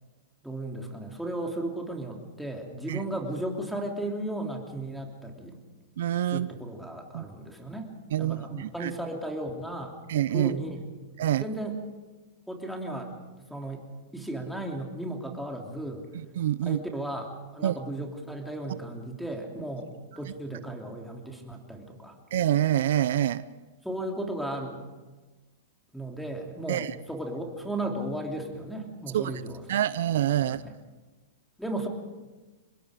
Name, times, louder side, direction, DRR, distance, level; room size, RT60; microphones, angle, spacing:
voice 1, 0.4-5.6 6.3-7.9 8.2-9.9 10.3-10.8 11.4-11.8 12.5-13.1 13.5-13.8 14.1-16.1 16.6-22.1 23.8-24.9 25.9-29.6 30.4-30.7 31.6-31.9, right 1 dB, ahead, 2 dB, 3.1 m, -35 dB
voice 2, 6.0-6.5 7.1-7.2 8.1-8.9 10.1-10.5 11.2-11.4 16.1-16.8 17.6-17.7 22.3-23.4 26.7-26.9 29.1-29.4 29.7-30.6, right 12 dB, 70° right, 16 dB, 0.6 m, -26 dB
25.0 x 21.0 x 5.1 m, 1.2 s
hypercardioid pair, 130°, 0 cm